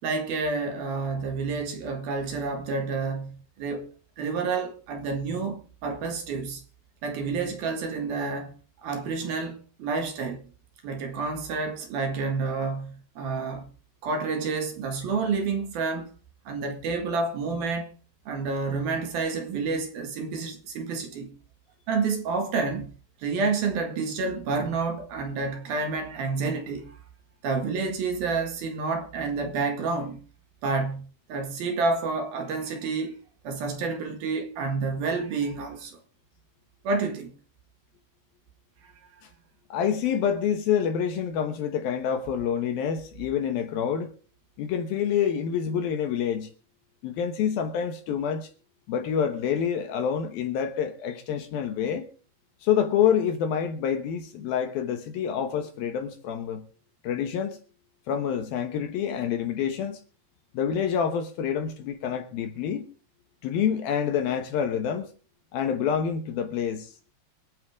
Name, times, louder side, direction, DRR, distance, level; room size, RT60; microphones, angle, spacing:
voice 1, 0.0-3.9 4.2-6.6 7.0-8.5 8.8-10.5 10.8-13.7 14.0-16.1 16.5-17.9 18.3-21.3 21.9-26.9 27.4-30.2 30.6-33.2 33.4-36.0 36.8-37.3, right 4 dB, 60° right, 3.4 m, -29 dB
voice 2, 39.7-44.1 44.6-46.5 47.0-48.5 48.9-52.1 52.6-56.6 57.0-57.6 58.1-60.0 60.5-62.9 63.4-65.1 65.5-66.9, left 8 dB, 70° left, 2.6 m, -27 dB
26.5 x 9.0 x 3.6 m
omnidirectional pair, 5.1 m